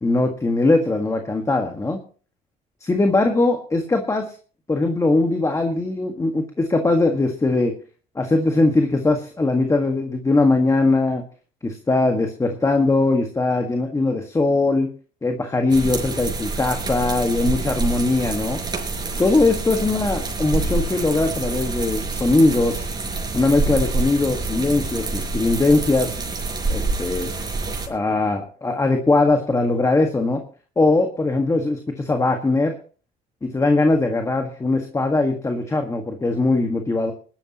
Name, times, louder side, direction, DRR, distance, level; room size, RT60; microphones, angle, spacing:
voice 1, 0.0-2.0 2.9-4.4 4.7-7.7 8.1-11.2 11.6-14.9 15.2-18.6 19.2-22.9 23.3-26.2 26.7-27.3 27.9-30.4 30.7-32.7 33.4-37.1, left 2 dB, 20° left, 4 dB, 1.7 m, -20 dB
sound 1, 15.7-27.9, right 3 dB, 25° right, 5.0 m, -27 dB
21.5 x 12.0 x 3.0 m, 0.40 s
cardioid pair, 110°, 17 cm